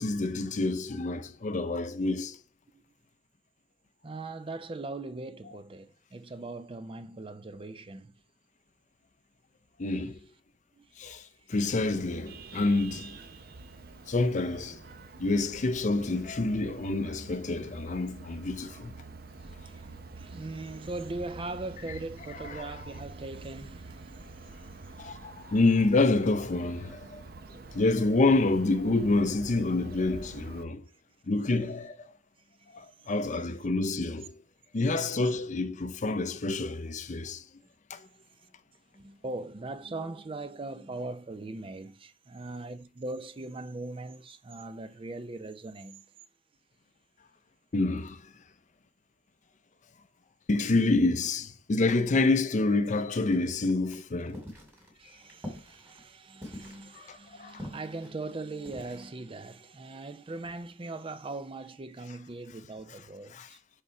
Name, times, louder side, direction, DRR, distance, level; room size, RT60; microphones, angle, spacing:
voice 1, 0.0-2.4 9.8-10.2 11.0-13.2 14.1-14.8 15.2-19.0 25.0-27.2 27.7-30.8 31.3-32.1 32.7-34.3 34.7-37.4 37.9-38.0 47.7-48.3 50.5-54.4 57.0-57.7 63.3-63.5, left 2 dB, 40° left, 0.5 m, -28 dB
voice 2, 4.0-8.1 10.7-10.9 19.4-24.9 33.0-33.1 38.0-38.5 38.9-46.0 55.0-63.6, right 2 dB, 30° right, 0.5 m, -40 dB
Vehicle horn car horn honking, 11.5-30.6, right 3 dB, 50° right, 0.8 m, -47 dB
sound 1, 53.2-59.1, left 1 dB, 10° right, 2.3 m, -46 dB
6.8 x 3.6 x 4.5 m
head